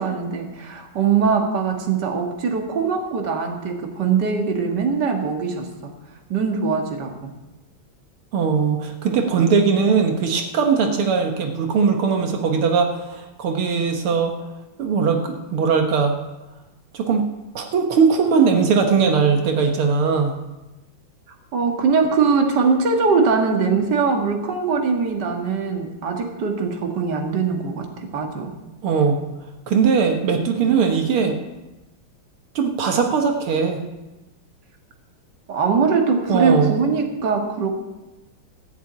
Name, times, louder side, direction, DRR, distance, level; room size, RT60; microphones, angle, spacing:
voice 1, 0.0-5.9 6.3-7.1 21.5-28.5 35.5-37.7, right 5 dB, 55° right, 2 dB, 2.2 m, -21 dB
voice 2, 8.3-14.3 14.8-16.1 16.9-17.3 17.6-20.4 28.8-29.2 29.7-31.4 32.6-33.8 36.3-36.7, right 5 dB, 85° right, 3 dB, 2.2 m, -19 dB
15.0 x 7.4 x 8.6 m, 1.1 s
omnidirectional pair, 2.3 m